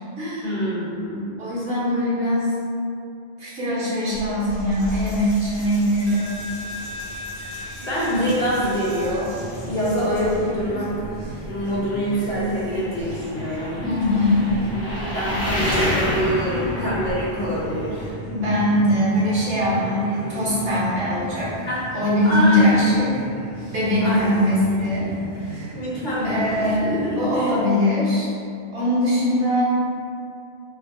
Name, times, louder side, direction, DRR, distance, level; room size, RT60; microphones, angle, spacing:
voice 1, 0.4-1.2 7.8-9.4 9.6-10.9 11.4-13.8 15.1-18.1 21.7-21.8 22.2-22.8 24.0-24.4 25.7-27.5, equal, 50° left, -8 dB, 0.9 m, -25 dB
voice 2, 1.4-2.5 3.4-6.3 10.4-10.7 13.8-14.5 18.4-21.5 21.9-23.1 23.7-25.1 25.4-25.7 26.2-28.3 28.7-29.6, left 1 dB, 65° right, -9 dB, 1.2 m, -21 dB
sound 1, 4.1-18.1, left 1 dB, 75° left, 1.2 m, -32 dB
Coin (dropping), 4.5-10.5, left 1 dB, 30° left, 0.6 m, -37 dB
sound 2, 7.9-27.4, right 1 dB, 30° right, 0.7 m, -36 dB
3.3 x 2.2 x 3.4 m, 2.5 s
omnidirectional pair, 1.1 m